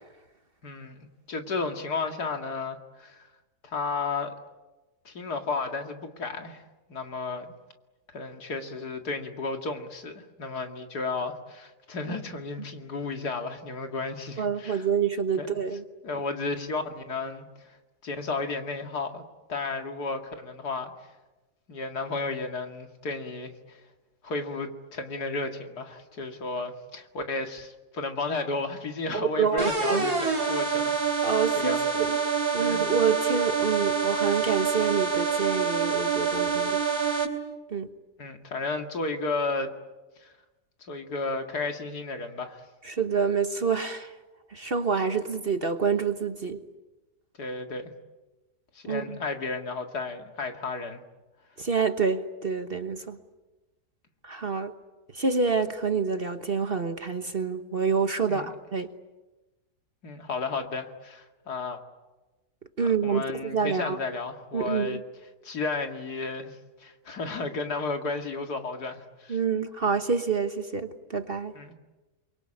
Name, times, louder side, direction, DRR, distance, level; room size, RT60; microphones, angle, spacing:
voice 1, 0.6-3.3 3.6-4.3 5.0-6.6 6.9-7.5 8.1-14.9 15.4-15.5 16.0-17.8 18.0-19.2 19.5-20.9 21.7-23.8 24.2-30.9 31.2-32.0 32.6-32.8 38.2-39.7 40.2-40.3 40.9-42.6 47.4-47.9 48.7-51.0 58.3-58.5 60.0-61.8 63.0-65.0 65.4-69.4 71.5-71.7, left 3 dB, 70° left, 2.7 m, -33 dB
voice 2, 14.4-15.8 29.1-30.1 31.2-32.2 32.5-36.8 37.7-37.9 42.8-44.1 44.5-46.6 48.9-49.2 51.6-53.2 54.2-54.7 55.1-58.9 62.8-64.0 64.5-65.0 69.3-71.5, right 5 dB, 40° right, 1.3 m, -27 dB
sound 1, 29.6-37.3, right 5 dB, 70° right, 4.1 m, -26 dB
28.5 x 23.0 x 8.8 m
omnidirectional pair, 1.7 m